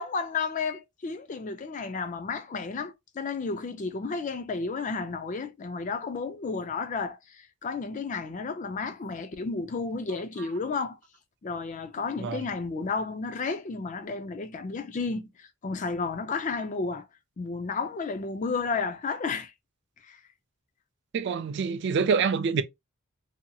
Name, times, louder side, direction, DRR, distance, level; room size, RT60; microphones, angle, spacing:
voice 1, 0.0-11.0 11.4-17.1 17.4-19.5 20.0-20.2, left 4 dB, 35° left, 0.4 m, -32 dB
voice 2, 21.1-22.6, right 5 dB, 55° right, 0.3 m, -26 dB
2.7 x 2.7 x 2.3 m
head